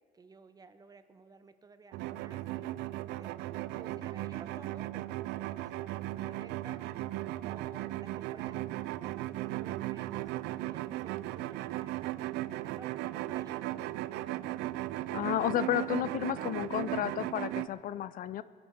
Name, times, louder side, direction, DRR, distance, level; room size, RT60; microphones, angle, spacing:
voice 1, 0.1-3.3 3.7-6.8 7.5-12.0 12.5-13.9, right 4 dB, 20° right, 11 dB, 0.8 m, -54 dB
sound 1, 1.9-17.7, right 16 dB, 90° right, 0.4 m, -37 dB
voice 2, 15.1-18.4, left 12 dB, 55° left, 16 dB, 0.4 m, -32 dB
21.0 x 11.5 x 3.6 m, 2.3 s
cardioid pair, 110°, 17 cm